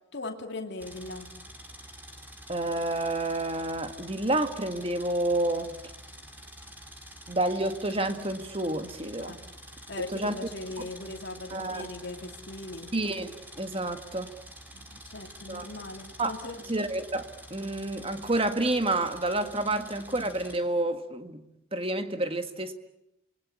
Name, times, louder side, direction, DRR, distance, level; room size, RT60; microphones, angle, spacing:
voice 1, 0.1-1.3 9.2-9.4 9.7-12.9 14.7-16.6, left 2 dB, 55° left, 3 dB, 2.6 m, -39 dB
sound 1, 0.8-20.6, equal, 10° right, 3.9 m, -47 dB
voice 2, 2.5-5.8 7.3-9.3 10.1-10.4 11.5-11.9 12.9-14.3 15.5-15.7 16.2-16.3 16.7-21.4 21.7-22.7, right 2 dB, 25° right, 8 dB, 1.8 m, -29 dB
28.5 x 22.0 x 8.7 m, 0.85 s
head